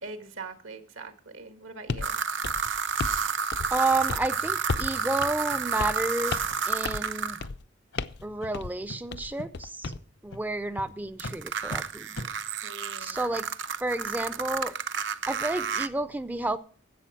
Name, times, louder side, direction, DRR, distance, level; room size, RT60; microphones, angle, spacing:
voice 1, 0.0-2.2 12.6-13.4, right 3 dB, 85° right, 1.6 m, -43 dB
sound 1, 1.9-2.1 2.4-3.2 3.5-3.8 4.1-4.3 4.7-5.0 5.2-5.3 5.8-6.0 6.3-6.6 6.9-7.1 7.4-7.6 8.0-8.2 8.5-8.7 9.1-10.0, left 4 dB, 55° left, 0.5 m, -33 dB
sound 2, 2.0-2.1 2.5-2.6 3.0-3.1 3.5-3.6 4.0-4.1 4.5-4.6 5.0-5.1 5.5-5.6 6.0-6.1 6.5-6.8 7.4-7.5 7.9-8.0 8.4-8.5 8.9-9.0 9.4-9.5 9.8-10.0 10.3-10.4 10.8-10.9 11.2-11.4 11.7-11.8 12.1-12.3, left 1 dB, 75° left, 1.2 m, -41 dB
sound 3, 2.0-7.4 11.2-15.9, right 6 dB, 60° right, 0.6 m, -31 dB
voice 2, 3.7-6.4 6.7-7.4 8.2-9.9 10.2-12.2 13.0-13.5 13.8-14.8 15.3-16.6, right 2 dB, 10° right, 0.4 m, -30 dB
11.0 x 8.0 x 5.9 m
head